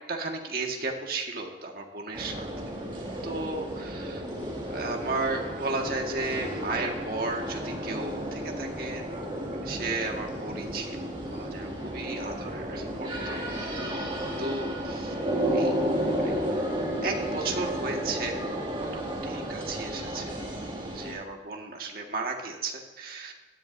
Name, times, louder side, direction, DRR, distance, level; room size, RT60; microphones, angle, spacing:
voice 1, 0.1-2.5 3.2-4.2 4.7-13.4 14.4-15.1 15.5-15.7 16.2-16.3 17.0-18.4 18.8-20.3 20.9-23.3, right 3 dB, 55° right, 1 dB, 1.6 m, -34 dB
sound 1, 2.1-21.1, equal, 30° right, 2.1 m, -32 dB
16.5 x 10.5 x 2.6 m, 1.2 s
head